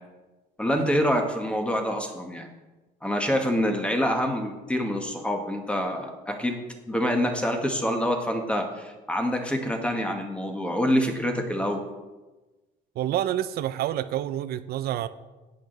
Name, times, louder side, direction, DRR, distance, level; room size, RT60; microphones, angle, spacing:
voice 1, 0.6-2.5 3.0-6.6 6.9-11.8, equal, 5° left, 4 dB, 1.5 m, -26 dB
voice 2, 13.0-15.1, right 12 dB, 65° right, 12 dB, 0.5 m, -28 dB
10.0 x 8.7 x 4.0 m, 1.2 s
cardioid pair, 110°, 17 cm